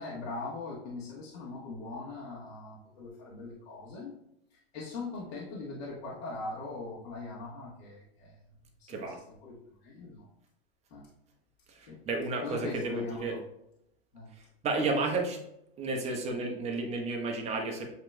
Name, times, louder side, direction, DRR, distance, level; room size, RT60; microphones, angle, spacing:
voice 1, 0.0-4.1 4.5-8.3 8.8-10.2 10.9-11.0 11.9-12.0 12.4-13.4 14.1-14.3 14.8-14.9, left 3 dB, 75° left, -5 dB, 1.4 m, -41 dB
voice 2, 8.9-9.2 11.7-13.4 14.6-15.4 15.8-17.9, right 3 dB, 20° right, 2 dB, 0.8 m, -32 dB
8.0 x 2.9 x 2.2 m, 0.80 s
hypercardioid pair, 135°, 32 cm